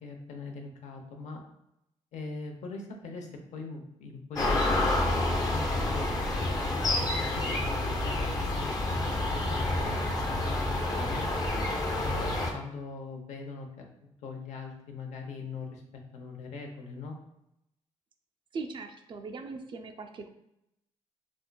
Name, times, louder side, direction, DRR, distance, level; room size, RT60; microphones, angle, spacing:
voice 1, 0.0-1.4 2.1-6.1 6.7-11.3 12.0-15.8 16.1-17.1, left 3 dB, 80° left, 2 dB, 0.6 m, -41 dB
sound 1, 4.4-12.5, left 2 dB, 30° left, 0.6 m, -28 dB
voice 2, 18.5-20.3, right 4 dB, 40° right, 5 dB, 0.3 m, -39 dB
4.3 x 2.4 x 2.2 m, 0.82 s
cardioid pair, 150°, 12 cm